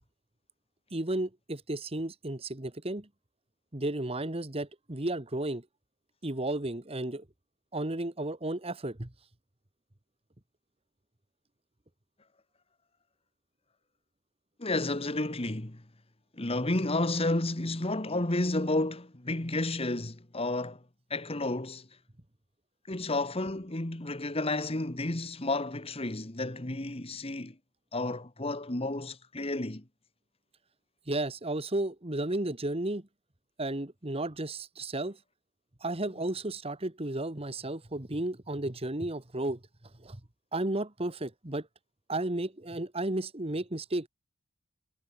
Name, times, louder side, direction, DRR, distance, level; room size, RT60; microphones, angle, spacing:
voice 1, 0.9-3.1 3.7-5.7 6.2-7.2 7.7-9.1 31.1-33.1 33.6-35.2 35.8-39.6 40.0-40.2 40.5-41.7 42.1-44.1, right 1 dB, 30° right, 1.6 m, -33 dB
voice 2, 14.6-15.8 16.4-20.8 21.1-21.9 22.9-27.6 27.9-29.8, left 2 dB, 25° left, 1.6 m, -31 dB
head